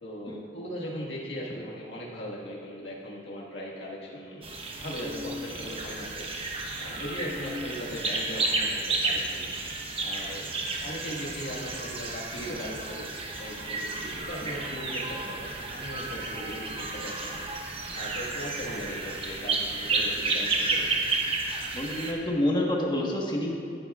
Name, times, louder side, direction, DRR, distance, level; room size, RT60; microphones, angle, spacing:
voice 1, 0.0-6.5 6.8-9.5 10.0-10.5 10.8-13.1 13.4-17.5 17.9-20.9, equal, 70° left, -4 dB, 1.7 m, -38 dB
sound 1, 4.4-22.1, right 3 dB, 30° right, 1.0 m, -32 dB
voice 2, 21.7-23.5, left 1 dB, 25° left, -1 dB, 1.3 m, -28 dB
14.0 x 10.0 x 2.4 m, 2.5 s
head